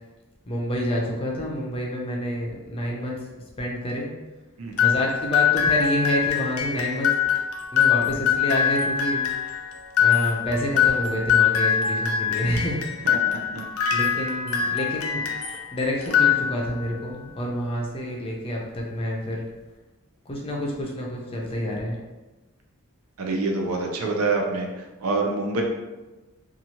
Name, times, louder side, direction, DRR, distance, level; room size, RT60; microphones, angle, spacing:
voice 1, 0.5-3.2 3.6-4.1 4.8-7.1 7.7-9.3 10.0-13.0 13.9-15.2 15.7-19.4 20.3-22.0, equal, 25° left, -2 dB, 0.4 m, -28 dB
voice 2, 4.6-4.9 13.0-14.1 23.2-25.6, right 3 dB, 85° right, 1 dB, 0.5 m, -27 dB
sound 1, 4.8-15.6 16.0-16.9, left 8 dB, 85° left, 0.5 m, -23 dB
2.9 x 2.4 x 2.8 m, 1.1 s
head